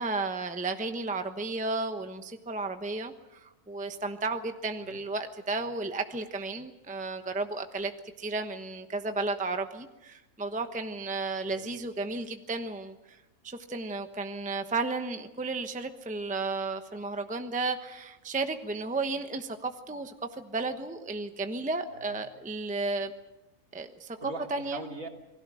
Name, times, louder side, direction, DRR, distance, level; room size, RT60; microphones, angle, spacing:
voice 1, 0.0-7.9 8.2-13.2 13.4-23.1 23.7-24.2 24.5-24.8, right 3 dB, 5° right, 7 dB, 0.9 m, -33 dB
voice 2, 11.4-11.8 21.9-22.2 24.2-25.1, right 2 dB, 65° right, 2 dB, 3.2 m, -42 dB
28.5 x 20.0 x 6.3 m, 0.98 s
omnidirectional pair, 1.6 m